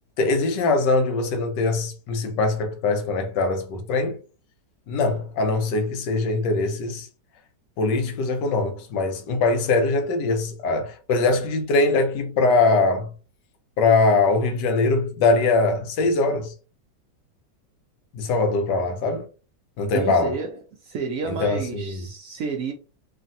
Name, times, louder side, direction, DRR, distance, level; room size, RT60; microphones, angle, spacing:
voice 1, 0.2-4.2 4.9-7.1 7.8-13.1 13.8-16.5 18.1-19.3 19.8-20.3 21.2-22.0, left 3 dB, 85° left, 1.3 m, -22 dB
voice 2, 19.9-20.6 20.8-22.7, right 5 dB, 75° right, 0.7 m, -30 dB
3.1 x 2.3 x 2.6 m
omnidirectional pair, 1.9 m